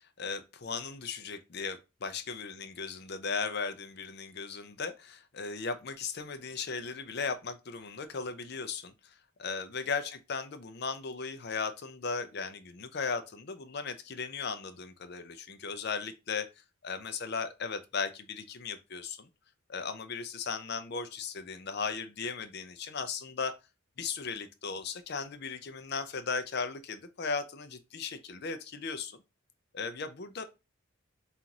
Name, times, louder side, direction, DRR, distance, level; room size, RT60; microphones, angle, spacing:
voice 1, 0.2-16.5 16.8-19.3 19.7-23.5 24.0-29.2 29.7-30.4, left 5 dB, 50° left, 0.5 m, -37 dB
5.5 x 2.5 x 2.8 m
head